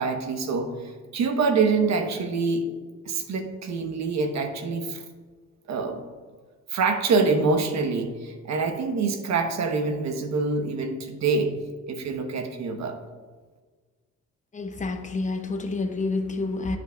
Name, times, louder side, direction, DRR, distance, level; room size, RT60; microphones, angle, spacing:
voice 1, 0.0-2.7 3.1-5.0 5.7-6.0 6.7-11.5 11.9-13.0, right 4 dB, 65° right, 6 dB, 1.0 m, -25 dB
voice 2, 14.5-16.8, left 3 dB, 25° left, 5 dB, 0.8 m, -28 dB
10.5 x 5.2 x 2.3 m, 1.4 s
cardioid pair, 90°, 30 cm